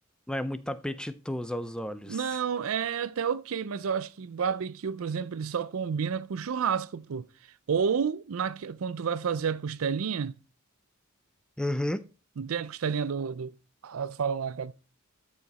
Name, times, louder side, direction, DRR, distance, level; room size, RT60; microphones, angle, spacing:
voice 1, 0.3-2.4 11.6-12.0, left 1 dB, 5° left, 0.4 m, -32 dB
voice 2, 2.1-7.3 7.7-10.4 12.4-13.5 13.8-14.7, right 6 dB, 70° right, 0.5 m, -30 dB
13.0 x 5.0 x 4.1 m
head